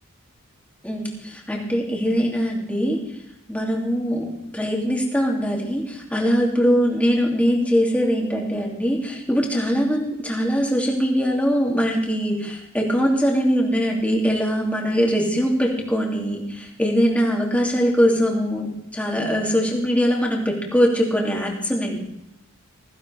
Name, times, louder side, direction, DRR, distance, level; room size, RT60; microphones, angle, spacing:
voice 1, 0.8-3.0 3.5-22.0, equal, 5° left, -1 dB, 2.6 m, -22 dB
16.0 x 15.5 x 3.4 m, 0.83 s
head